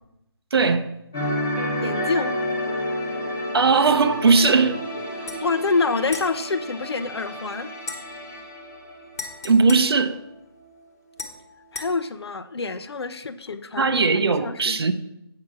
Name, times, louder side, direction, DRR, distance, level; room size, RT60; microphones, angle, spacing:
voice 1, 0.5-0.9 3.5-4.8 9.4-10.2 13.8-14.9, right 4 dB, 75° right, 0.7 m, -18 dB
sound 1, 1.1-9.8 10.1-10.3, equal, 5° left, 0.3 m, -30 dB
voice 2, 1.8-2.3 5.2-7.7 11.7-13.9 14.4-14.9, left 4 dB, 85° left, 0.7 m, -27 dB
sound 2, 5.2-5.4 6.1-7.3 7.8-10.7 11.2-11.9, left 4 dB, 40° left, 1.1 m, -39 dB
8.7 x 5.7 x 4.7 m
hypercardioid pair, 170°, 13 cm